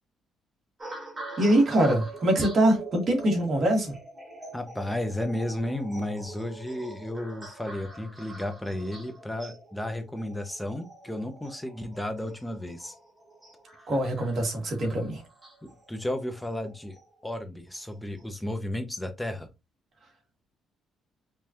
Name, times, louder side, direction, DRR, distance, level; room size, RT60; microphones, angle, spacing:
sound 1, 0.8-17.3 17.9-18.2, right 2 dB, 20° right, 1.6 m, -45 dB
voice 1, 1.4-3.9 13.9-15.2, right 1 dB, 40° right, 1.6 m, -23 dB
voice 2, 4.5-12.9 15.6-17.0 17.2-19.5, left 1 dB, 5° left, 0.5 m, -33 dB
5.3 x 2.3 x 2.8 m
cardioid pair, 140°, 0 cm